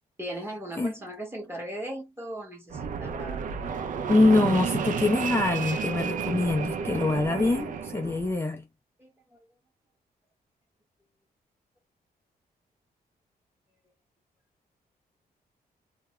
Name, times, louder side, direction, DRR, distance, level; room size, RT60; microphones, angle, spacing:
voice 1, 0.2-3.4 9.0-9.1, right 1 dB, 15° right, 1.0 m, -38 dB
Fixed-wing aircraft airplane, 2.7-8.3, right 6 dB, 55° right, 0.4 m, -31 dB
voice 2, 4.1-8.6, left 2 dB, 15° left, 0.4 m, -24 dB
2.3 x 2.0 x 3.0 m
wide cardioid pair, 140°, 16 cm